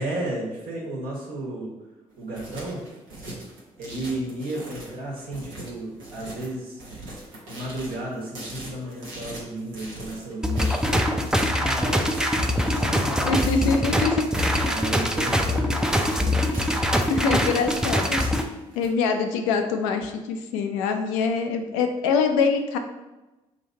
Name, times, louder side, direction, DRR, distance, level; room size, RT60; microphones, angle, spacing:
voice 1, 0.0-1.7 2.2-2.8 3.8-6.8 7.5-11.1 11.6-12.1 12.8-13.3 14.6-15.7, right 1 dB, 65° right, -2 dB, 1.2 m, -33 dB
sound 1, 2.1-18.9, right 2 dB, 85° right, 0.8 m, -40 dB
sound 2, 10.4-18.4, equal, 5° right, 0.4 m, -23 dB
voice 2, 13.0-14.3 17.1-18.2 18.8-22.8, left 5 dB, 80° left, 6 dB, 0.4 m, -24 dB
2.9 x 2.7 x 4.3 m, 1.0 s
hypercardioid pair, 40°, 17 cm